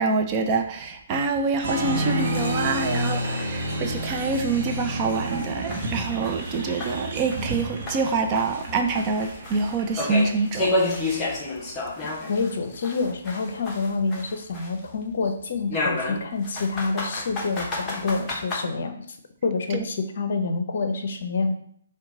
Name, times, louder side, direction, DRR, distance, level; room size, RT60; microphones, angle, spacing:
voice 1, 0.0-10.7 11.0-11.2 19.7-19.8, right 4 dB, 30° right, 4 dB, 0.5 m, -26 dB
Applause, 1.6-10.0, right 1 dB, 45° right, 0.8 m, -30 dB
sound 1, 1.8-1.9 2.3-2.4 2.8-2.9 3.4-3.5 4.0-4.1 4.5-4.6 5.1-7.6 7.9-12.5 12.8-14.9 15.7-18.6, left 2 dB, 15° left, 0.9 m, -30 dB
voice 2, 12.3-19.1 19.4-21.5, left 4 dB, 55° left, 6 dB, 0.6 m, -27 dB
4.5 x 2.2 x 3.7 m, 0.65 s
figure-of-eight pair, 135°, 0 cm